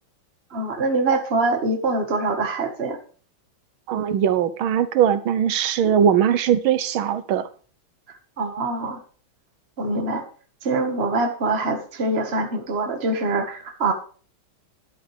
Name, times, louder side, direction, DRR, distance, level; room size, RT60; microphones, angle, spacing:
voice 1, 0.5-3.0 8.4-9.0 9.8-10.2 10.6-13.9, right 3 dB, 30° right, 4 dB, 1.7 m, -24 dB
voice 2, 3.9-7.5, right 9 dB, 85° right, 12 dB, 1.7 m, -20 dB
12.5 x 11.0 x 3.4 m, 0.41 s
omnidirectional pair, 2.2 m